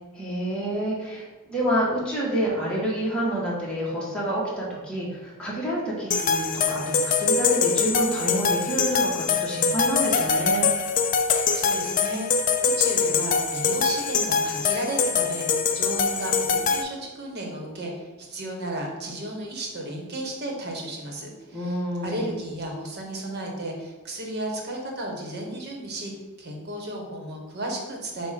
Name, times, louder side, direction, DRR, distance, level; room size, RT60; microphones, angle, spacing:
voice 1, 0.2-10.7 21.5-22.3, equal, 5° left, -7 dB, 1.5 m, -28 dB
sound 1, 6.1-16.8, left 5 dB, 40° left, 0.4 m, -23 dB
voice 2, 11.3-26.1 26.4-28.3, right 1 dB, 55° right, 0 dB, 1.2 m, -34 dB
7.3 x 2.5 x 5.2 m, 1.2 s
head